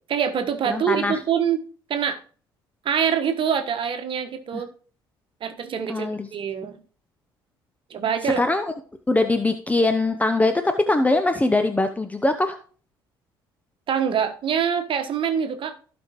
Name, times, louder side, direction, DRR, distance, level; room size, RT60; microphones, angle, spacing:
voice 1, 0.1-1.6 1.9-2.2 2.8-4.7 5.4-6.8 7.9-8.4 13.9-15.7, right 7 dB, 45° right, 7 dB, 1.3 m, -25 dB
voice 2, 0.7-1.1 4.5-4.6 5.9-6.3 8.4-8.7 9.1-12.6, left 2 dB, 10° left, 7 dB, 0.8 m, -22 dB
15.5 x 5.2 x 3.0 m, 0.43 s
figure-of-eight pair, 50°, 12 cm